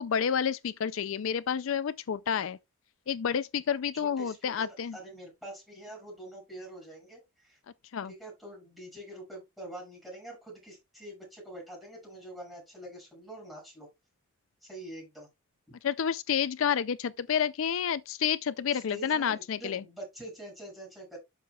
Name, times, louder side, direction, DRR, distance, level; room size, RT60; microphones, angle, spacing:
voice 1, 0.0-2.6 3.1-4.9 7.9-8.1 15.8-19.8, left 7 dB, 65° left, 0.4 m, -29 dB
voice 2, 4.0-7.6 8.1-13.9 14.6-15.3 18.7-21.2, right 1 dB, ahead, 6.3 m, -45 dB
12.0 x 6.5 x 2.3 m
head